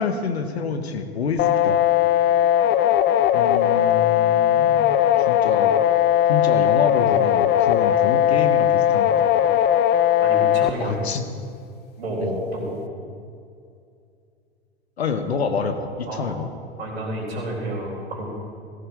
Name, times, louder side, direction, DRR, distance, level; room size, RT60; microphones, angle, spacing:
voice 1, 0.0-1.8 3.3-5.8 6.3-9.3 10.8-11.2 12.2-12.4 15.0-16.5, left 5 dB, 80° left, 8 dB, 1.4 m, -27 dB
sound 1, 1.4-10.7, left 11 dB, 30° left, 0.7 m, -18 dB
voice 2, 10.2-11.1 12.0-12.8 16.1-16.3 16.8-18.3, right 1 dB, 80° right, -7 dB, 3.8 m, -29 dB
17.0 x 17.0 x 3.7 m, 2.4 s
hypercardioid pair, 90°, 31 cm